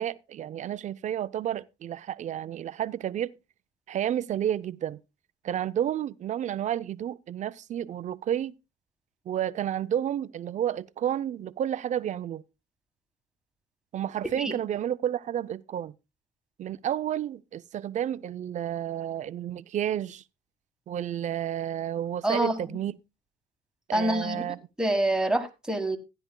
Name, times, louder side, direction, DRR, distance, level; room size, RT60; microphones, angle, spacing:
voice 1, 0.0-3.3 3.9-5.0 5.4-8.5 9.3-12.4 13.9-15.9 16.6-20.2 20.9-23.0 23.9-24.6, right 10 dB, 45° right, 0.5 m, -31 dB
voice 2, 22.2-22.5 23.9-24.4 24.8-26.0, right 1 dB, 5° right, 1.5 m, -26 dB
15.5 x 10.5 x 2.2 m
cardioid pair, 110°, 17 cm